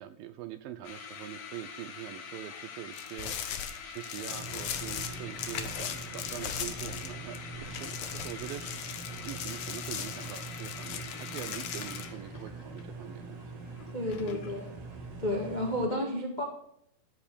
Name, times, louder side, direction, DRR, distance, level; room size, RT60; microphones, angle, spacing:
voice 1, 0.0-8.8 9.2-13.4, right 12 dB, 80° right, 11 dB, 2.2 m, -43 dB
sound 1, 0.8-14.7, left 7 dB, 60° left, 1.8 m, -45 dB
sound 2, 2.9-7.4 7.7-12.1, left 8 dB, 85° left, 1.5 m, -39 dB
sound 3, 4.3-15.9, right 3 dB, 50° right, 2.0 m, -44 dB
voice 2, 13.9-14.8 15.2-16.4, left 1 dB, 35° left, -1 dB, 0.6 m, -31 dB
14.5 x 4.9 x 8.5 m, 0.72 s
omnidirectional pair, 4.5 m